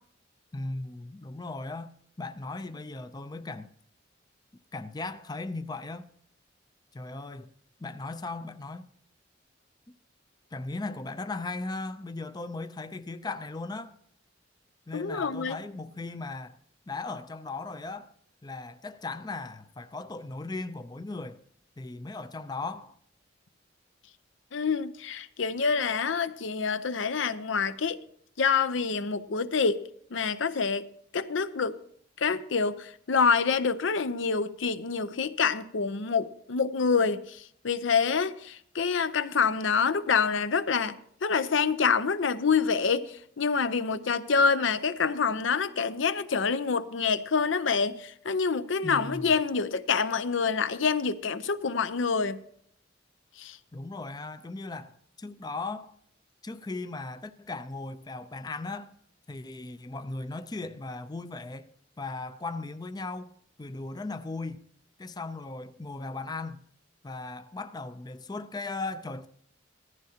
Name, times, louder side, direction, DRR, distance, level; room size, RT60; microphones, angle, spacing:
voice 1, 0.5-1.9 2.2-3.7 4.7-6.1 6.9-7.5 7.8-8.9 10.5-13.9 14.9-16.6 16.9-18.1 18.4-21.4 21.8-23.0 48.8-49.3 53.7-55.9 56.4-58.9 59.3-61.7 62.0-64.6 65.0-66.6 67.0-69.3, left 3 dB, 20° left, 0.4 m, -37 dB
voice 2, 14.9-15.6 24.5-28.0 28.4-29.8 30.1-31.8 32.2-52.4 53.4-53.6, left 5 dB, 70° left, 0.6 m, -27 dB
15.5 x 14.0 x 2.8 m
head